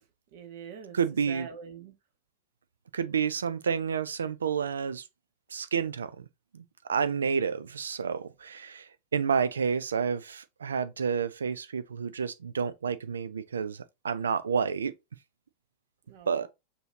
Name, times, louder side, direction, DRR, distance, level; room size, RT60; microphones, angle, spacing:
voice 1, 0.3-1.0 1.3-1.9 16.1-16.5, right 7 dB, 50° right, 0.9 m, -44 dB
voice 2, 0.9-1.5 2.9-5.0 5.5-6.3 6.5-6.6 6.9-14.9 16.3-16.5, right 6 dB, 70° right, 0.4 m, -30 dB
5.5 x 2.8 x 2.7 m
figure-of-eight pair, 90°, 0 cm